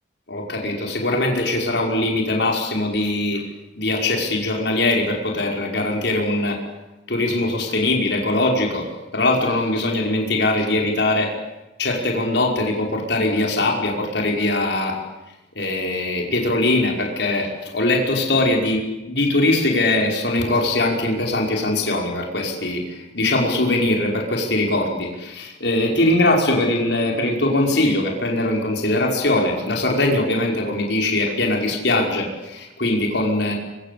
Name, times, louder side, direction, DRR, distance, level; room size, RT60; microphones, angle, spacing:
voice 1, 0.3-3.4 3.8-6.6 7.1-8.9 9.1-11.3 11.8-15.0 15.6-18.8 19.1-33.5, left 2 dB, 65° left, 1 dB, 5.5 m, -21 dB
25.0 x 24.5 x 8.6 m, 1.0 s
head